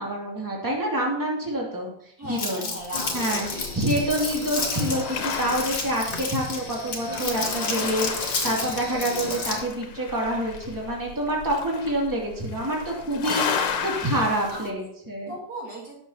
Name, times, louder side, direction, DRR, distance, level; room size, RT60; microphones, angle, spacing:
voice 1, 0.0-1.9 2.2-2.7 3.1-13.4 13.8-15.3, right 1 dB, 10° right, -3 dB, 2.3 m, -27 dB
voice 2, 2.2-3.2 13.3-14.0 14.5-14.7 15.3-16.0, right 1 dB, 45° right, -3 dB, 2.3 m, -37 dB
Crumpling crinkling, 2.4-9.7, left 4 dB, 50° left, 2.3 m, -31 dB
sound 1, 2.8-14.7, left 6 dB, 80° left, 1.9 m, -34 dB
sound 2, 2.9-9.6, left 3 dB, 20° left, 1.2 m, -37 dB
18.0 x 7.0 x 2.9 m, 0.70 s
omnidirectional pair, 2.4 m